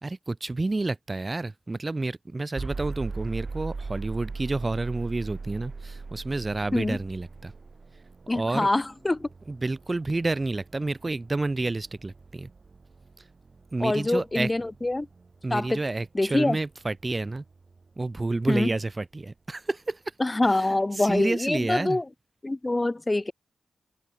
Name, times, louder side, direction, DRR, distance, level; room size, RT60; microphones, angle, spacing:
voice 1, 0.0-7.5 8.3-8.7 9.5-12.5 13.7-14.5 15.4-17.4 18.0-20.0 20.4-20.7 21.0-22.0, right 2 dB, 35° right, 0.6 m, -29 dB
sound 1, 2.5-18.5, right 4 dB, 50° right, 5.8 m, -41 dB
voice 2, 8.3-9.3 13.8-15.1 15.5-15.8 16.1-16.6 18.5-18.7 20.2-22.0 22.4-23.3, left 2 dB, 25° left, 0.6 m, -25 dB
open air
cardioid pair, 55°, 0 cm